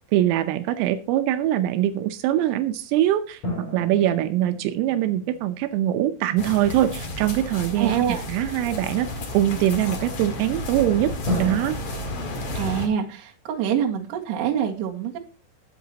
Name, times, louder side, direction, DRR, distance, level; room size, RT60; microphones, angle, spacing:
voice 1, 0.1-3.4 3.7-11.1 11.4-11.8, right 12 dB, 85° right, 8 dB, 3.5 m, -23 dB
sound 1, 3.4-6.4 11.3-11.6, left 1 dB, 25° left, 5.3 m, -32 dB
sound 2, 6.4-12.9, left 1 dB, 50° left, 1.9 m, -32 dB
voice 2, 7.8-8.2 12.6-15.2, right 9 dB, 60° right, 0 dB, 3.5 m, -25 dB
22.0 x 8.3 x 2.9 m, 0.34 s
omnidirectional pair, 5.9 m